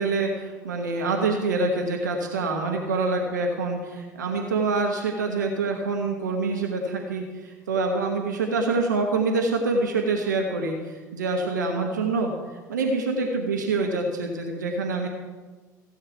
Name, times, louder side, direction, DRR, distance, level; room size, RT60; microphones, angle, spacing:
voice 1, 0.0-15.1, right 3 dB, 75° right, 2 dB, 1.2 m, -26 dB
15.5 x 8.7 x 4.7 m, 1.3 s
figure-of-eight pair, 65°, 10 cm